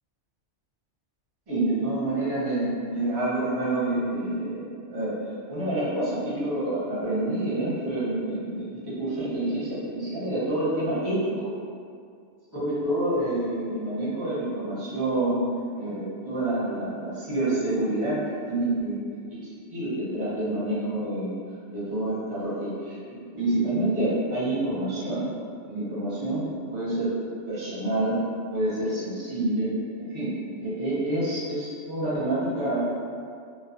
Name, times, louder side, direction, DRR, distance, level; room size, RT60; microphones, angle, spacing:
voice 1, 1.5-5.1 5.5-11.5 12.5-15.4 15.8-18.2 18.5-19.0 19.3-21.4 21.7-25.3 25.6-26.4 26.7-27.1 27.5-28.1 28.5-29.7 30.0-30.3 30.6-32.8, right 1 dB, 25° right, -10 dB, 0.6 m, -28 dB
2.3 x 2.2 x 2.4 m, 2.3 s
omnidirectional pair, 1.2 m